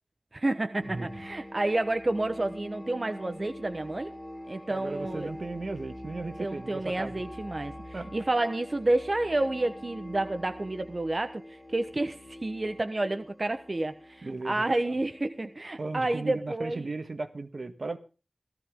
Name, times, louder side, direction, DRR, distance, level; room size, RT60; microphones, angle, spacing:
voice 1, 0.3-4.1 4.5-5.3 6.4-16.9, right 2 dB, 50° right, 8 dB, 1.1 m, -30 dB
sound 1, 0.8-16.3, equal, ahead, 6.8 m, -45 dB
voice 2, 4.7-7.1 7.9-8.1 14.2-14.6 15.8-18.0, right 3 dB, 75° right, 8 dB, 1.7 m, -36 dB
17.0 x 15.0 x 3.7 m, 0.34 s
wide cardioid pair, 55°, 0 cm